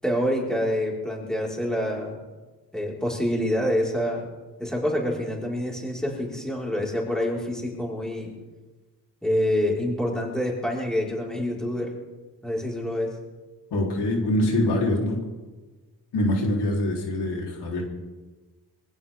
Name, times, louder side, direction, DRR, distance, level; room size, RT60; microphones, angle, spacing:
voice 1, 0.0-2.2 2.7-4.3 4.6-8.3 9.2-11.9 12.4-13.1, equal, ahead, -3 dB, 5.2 m, -26 dB
voice 2, 13.7-15.2 16.1-17.8, left 1 dB, 80° left, -1 dB, 4.1 m, -24 dB
24.0 x 16.0 x 3.8 m, 1.3 s
cardioid pair, 85°, 40 cm